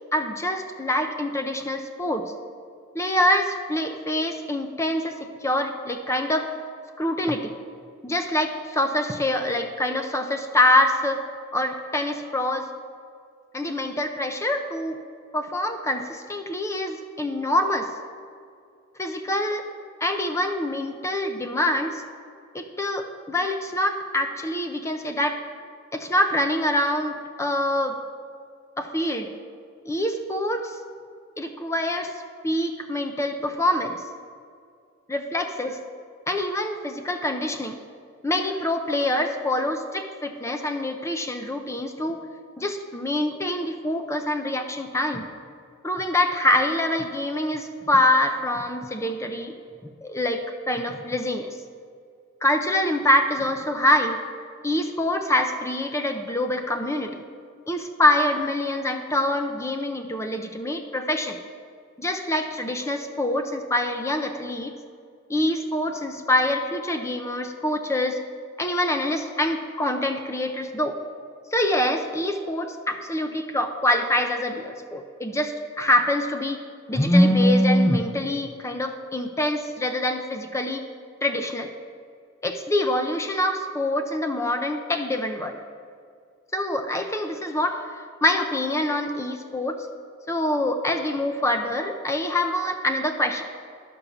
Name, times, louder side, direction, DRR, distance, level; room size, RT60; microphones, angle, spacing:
voice 1, 0.1-2.3 2.9-6.5 7.0-7.5 8.0-11.2 11.5-12.7 13.5-15.0 15.3-17.9 19.0-19.6 20.0-22.0 22.5-25.4 25.9-28.0 28.8-29.3 29.9-30.8 31.4-32.1 32.4-34.0 35.1-35.8 36.3-37.8 38.2-42.2 42.6-45.3 45.8-49.5 49.8-51.5 52.4-54.2 54.6-57.2 57.7-61.4 62.0-64.7 65.3-68.2 68.6-71.0 71.5-80.8 81.2-81.7 82.4-85.6 86.5-89.9 90.3-93.4, left 1 dB, 15° left, 5 dB, 0.5 m, -25 dB
11.5 x 5.3 x 7.1 m, 2.3 s
head